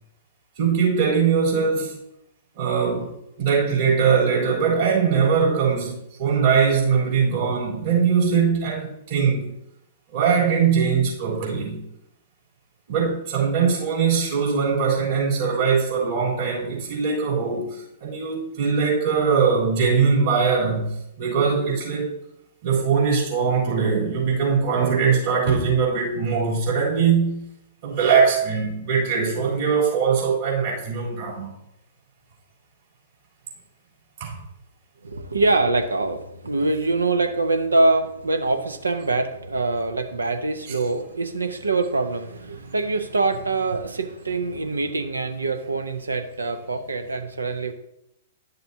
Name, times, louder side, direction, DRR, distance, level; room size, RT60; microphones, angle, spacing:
voice 1, 0.6-2.0 2.6-3.1 3.4-9.5 10.1-11.8 12.9-22.1 22.6-27.5 27.8-31.5 34.2-34.4, right 6 dB, 55° right, 3.5 m, -21 dB
voice 2, 35.0-47.7, right 3 dB, 80° right, 0.7 m, -24 dB
10.5 x 6.7 x 2.7 m
figure-of-eight pair, 110°, 0 cm